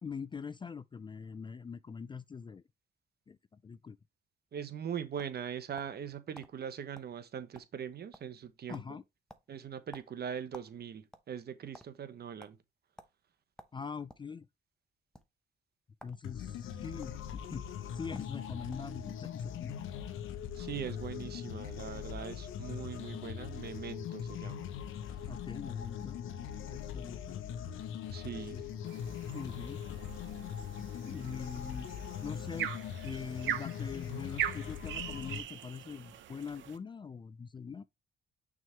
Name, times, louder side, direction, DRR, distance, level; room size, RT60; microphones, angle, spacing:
voice 1, 0.0-2.6 3.3-4.0 8.7-9.0 13.7-14.5 16.0-17.7 17.9-19.8 25.3-26.2 26.7-27.4 28.2-28.6 29.3-29.8 31.0-31.9 32.2-32.7 33.0-37.8, left 6 dB, 25° left, 0.3 m, -43 dB
voice 2, 4.5-9.0 9.5-12.6 20.6-24.7 28.1-28.6, right 8 dB, 55° right, 1.0 m, -41 dB
sound 1, 5.2-6.0 6.3-6.5 6.9-7.1 7.4-8.4 8.7-8.9 9.3-10.7 11.0-11.9 12.4-12.5 13.0-13.1 13.6-14.3 15.0-15.2 15.9-16.2 16.5-17.1 17.8-17.9 18.1-18.3 18.7-19.0, equal, 5° left, 0.8 m, -53 dB
sound 2, 16.2-35.4, left 8 dB, 85° left, 0.8 m, -41 dB
sound 3, 28.9-36.8, right 11 dB, 70° right, 0.7 m, -41 dB
6.2 x 3.6 x 4.5 m
cardioid pair, 90°, 20 cm